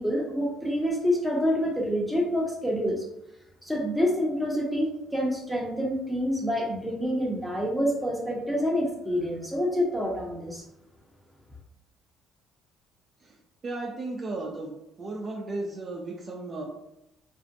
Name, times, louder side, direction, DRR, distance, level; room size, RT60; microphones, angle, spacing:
voice 1, 0.0-3.0 3.6-10.6, equal, ahead, -2 dB, 0.7 m, -27 dB
voice 2, 13.6-14.7 15.0-16.6, right 2 dB, 35° right, -1 dB, 0.4 m, -34 dB
2.5 x 2.1 x 2.6 m, 0.84 s
supercardioid pair, 85°, 0 cm